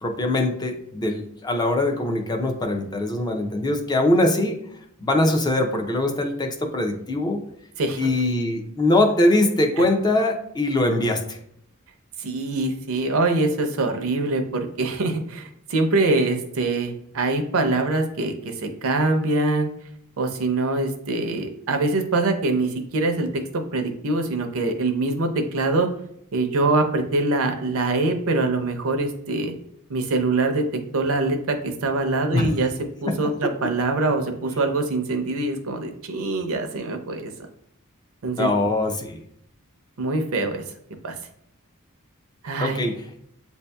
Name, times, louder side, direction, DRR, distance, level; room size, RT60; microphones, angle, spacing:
voice 1, 0.0-4.6 5.0-7.4 8.0-11.4 32.3-32.5 33.1-33.2 38.4-39.2 42.6-43.1, left 1 dB, 20° left, 4 dB, 0.4 m, -22 dB
voice 2, 12.2-19.7 20.2-25.9 26.3-29.5 29.9-30.7 30.9-32.7 33.0-37.3 38.2-38.5 40.0-40.6 41.0-41.1 42.4-42.9, right 2 dB, 65° right, 5 dB, 0.6 m, -24 dB
7.9 x 2.7 x 2.2 m, 0.72 s
head